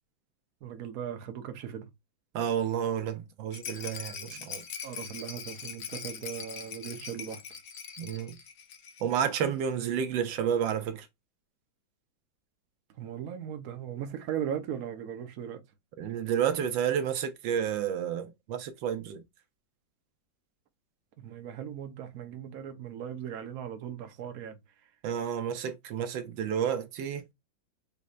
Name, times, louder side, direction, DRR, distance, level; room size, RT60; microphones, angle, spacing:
voice 1, 0.6-1.9 4.3-4.5 4.8-7.4 13.0-15.6 21.2-24.6, right 9 dB, 55° right, 1.2 m, -38 dB
voice 2, 2.3-4.6 8.0-8.4 9.0-11.1 16.0-19.2 25.0-27.2, right 8 dB, 80° right, 1.4 m, -30 dB
Rattle, 3.5-9.2 9.5-9.6 9.8-9.9, left 7 dB, 60° left, 1.0 m, -42 dB
6.7 x 3.1 x 2.4 m
omnidirectional pair, 2.1 m